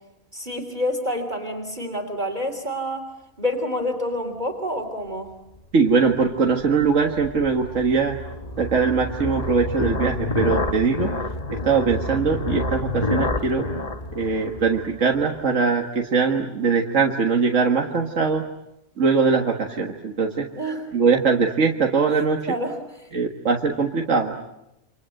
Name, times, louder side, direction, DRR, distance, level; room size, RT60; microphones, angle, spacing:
voice 1, 0.3-3.1 3.4-5.3 20.6-20.9 22.5-23.1, left 1 dB, 30° right, 4 dB, 3.4 m, -28 dB
voice 2, 5.7-8.2 8.6-11.1 11.7-13.7 14.2-18.4 19.0-20.5 20.9-22.5 23.1-24.5, right 5 dB, 65° right, 1 dB, 2.0 m, -21 dB
sound 1, 5.8-15.4, left 2 dB, 30° left, 1.3 m, -29 dB
29.0 x 26.0 x 7.8 m, 0.90 s
omnidirectional pair, 1.4 m